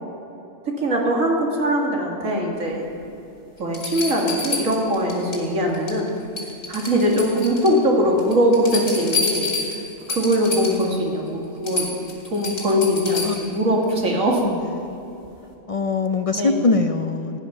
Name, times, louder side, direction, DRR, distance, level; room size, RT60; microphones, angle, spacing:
voice 1, 0.7-2.9 3.6-6.1 6.7-9.5 10.1-14.4 16.3-16.5, equal, 80° right, -1 dB, 2.5 m, -21 dB
sound 1, 3.0-3.1 3.7-5.4 5.7-6.1 6.4-7.8 8.2-10.9 11.3-11.4 11.6-13.5 15.2-15.3, left 3 dB, 80° left, 3.1 m, -29 dB
voice 2, 15.7-17.4, left 3 dB, 60° left, 7 dB, 0.3 m, -22 dB
16.5 x 10.5 x 5.9 m, 2.9 s
omnidirectional pair, 1.3 m